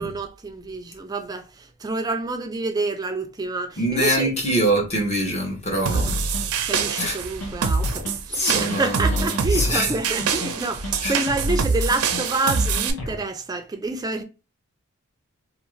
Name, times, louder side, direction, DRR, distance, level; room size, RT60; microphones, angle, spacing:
voice 1, 0.0-4.4 5.9-6.0 6.6-14.2, right 3 dB, 15° right, 0.3 m, -28 dB
voice 2, 3.8-6.2 7.0-7.2 8.3-9.9 11.0-11.1, right 1 dB, 30° left, 0.8 m, -24 dB
sound 1, 5.9-12.9, right 4 dB, 90° right, 0.5 m, -25 dB
sound 2, 6.3-6.4 6.8-7.1 7.4-8.2 8.5-8.8 9.1-9.9 10.2-10.6 10.8-11.6 11.9-12.2 12.5-13.2, left 1 dB, 65° left, 0.9 m, -33 dB
2.5 x 2.4 x 3.0 m
head